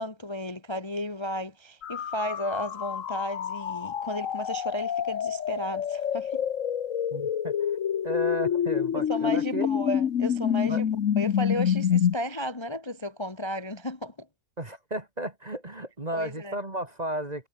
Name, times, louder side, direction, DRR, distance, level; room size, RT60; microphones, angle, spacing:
voice 1, 0.0-6.4 8.9-10.8 11.2-14.3 16.1-16.6, left 1 dB, 15° left, 1.4 m, -33 dB
sound 1, 1.8-12.1, left 8 dB, 50° left, 1.2 m, -27 dB
voice 2, 7.1-7.5 8.0-9.7 10.7-10.8 14.6-17.5, right 1 dB, 20° right, 2.0 m, -34 dB
omnidirectional pair, 2.1 m